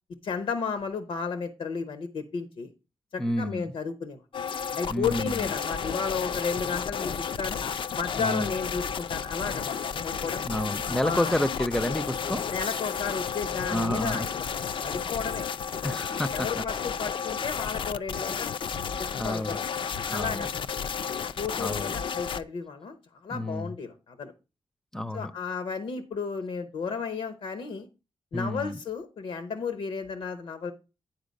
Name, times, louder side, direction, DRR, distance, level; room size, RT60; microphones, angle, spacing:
voice 1, 0.2-2.7 3.1-4.2 4.7-7.6 8.0-10.4 11.0-11.3 12.5-15.8 16.3-18.6 19.0-19.6 20.1-20.6 21.4-23.0 23.2-24.3 25.1-27.9 28.3-30.7, left 5 dB, 90° left, 0.8 m, -33 dB
voice 2, 3.2-3.7 4.9-5.5 8.2-8.5 10.5-12.4 13.7-14.3 15.8-16.6 19.2-19.6 20.1-20.5 21.6-21.9 23.3-23.8 24.9-25.3 28.3-28.8, left 1 dB, 5° left, 0.5 m, -30 dB
sound 1, 4.3-22.4, left 7 dB, 65° left, 0.4 m, -32 dB
9.8 x 4.4 x 5.2 m
cardioid pair, 90°, 9 cm